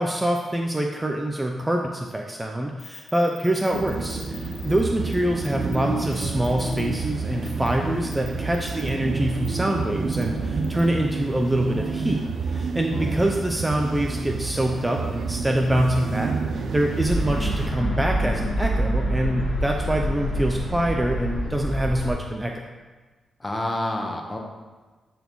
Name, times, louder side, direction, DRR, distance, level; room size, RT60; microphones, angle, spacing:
voice 1, 0.0-16.3 16.7-22.7, right 1 dB, 15° right, 1 dB, 0.5 m, -25 dB
sound 1, 2.8-4.8 5.1-5.2 5.4-5.8 6.1-6.8 7.5-7.7 8.1-8.9 9.4-9.5 10.1-10.2 10.6-10.8, left 9 dB, 85° left, 0.8 m, -43 dB
sound 2, 3.7-17.7, right 4 dB, 70° right, 0.6 m, -29 dB
voice 2, 12.9-13.3 23.4-24.4, left 1 dB, 15° left, 1 dB, 1.1 m, -29 dB
sound 3, 17.1-22.1, equal, 45° left, 1.6 m, -26 dB
10.0 x 4.2 x 3.1 m, 1.3 s
cardioid pair, 90°, 0 cm